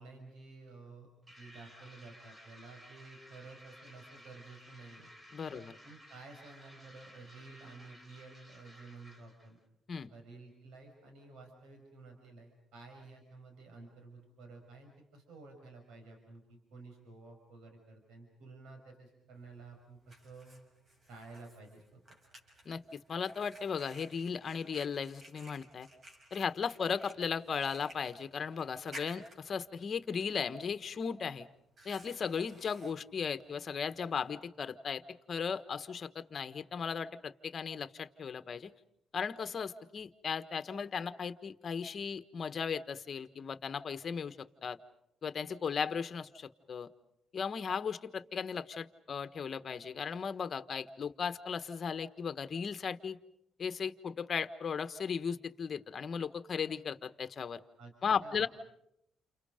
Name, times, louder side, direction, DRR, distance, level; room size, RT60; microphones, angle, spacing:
voice 1, 0.0-5.1 5.5-9.6 10.1-20.6 21.1-22.2 57.8-57.9 58.2-58.5, right 3 dB, 85° right, 3 dB, 5.7 m, -52 dB
sound 1, 1.3-9.5, equal, 20° right, 4.4 m, -56 dB
voice 2, 5.3-5.7 9.9-10.1 22.6-25.9 26.3-31.5 31.8-35.0 35.3-38.7 39.1-44.8 45.2-46.9 47.3-53.2 53.6-57.6 58.0-58.5, left 6 dB, 45° left, 11 dB, 1.3 m, -36 dB
Fire, 19.4-34.3, equal, 40° right, 6.1 m, -57 dB
29.5 x 29.0 x 5.2 m, 0.77 s
cardioid pair, 90°, 0 cm